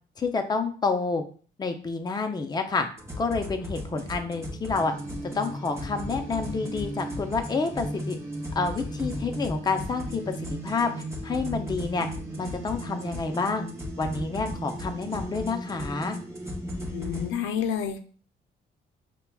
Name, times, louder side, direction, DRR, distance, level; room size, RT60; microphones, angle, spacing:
voice 1, 0.2-1.2 1.6-2.9 3.2-4.9 5.3-8.2 8.5-10.2 10.5-12.1 12.4-13.7 14.0-16.2, left 4 dB, 20° left, 5 dB, 0.5 m, -28 dB
sound 1, 3.0-17.3, equal, 15° right, 0.8 m, -35 dB
voice 2, 16.9-18.0, left 8 dB, 85° left, 7 dB, 0.5 m, -29 dB
5.5 x 2.2 x 2.3 m, 0.42 s
cardioid pair, 90°, 20 cm